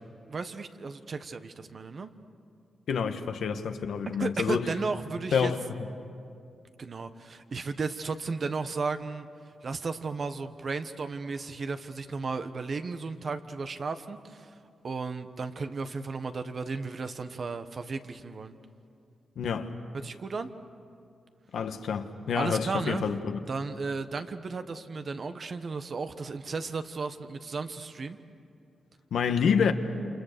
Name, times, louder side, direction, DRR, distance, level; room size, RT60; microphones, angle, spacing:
voice 1, 0.3-2.1 4.2-5.5 6.8-9.3 9.6-14.5 14.8-18.5 20.0-20.5 22.3-23.0 23.5-28.2, right 4 dB, 55° right, 1.3 m, -34 dB
voice 2, 2.9-4.7 5.3-5.6 19.4-19.7 21.5-23.4 29.1-29.7, left 6 dB, 80° left, 1.3 m, -28 dB
28.5 x 27.5 x 6.8 m
cardioid pair, 65°, 0 cm